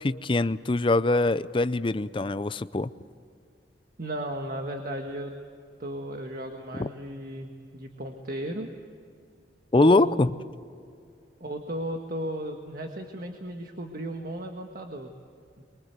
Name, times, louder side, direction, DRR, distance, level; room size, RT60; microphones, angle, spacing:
voice 1, 0.0-2.9 6.8-6.9 9.7-10.3, left 2 dB, 30° left, 14 dB, 0.5 m, -23 dB
voice 2, 4.0-5.3 5.8-8.7 9.7-10.2 11.4-15.1, right 1 dB, 50° right, 3 dB, 1.5 m, -35 dB
24.0 x 23.5 x 8.1 m, 2.4 s
head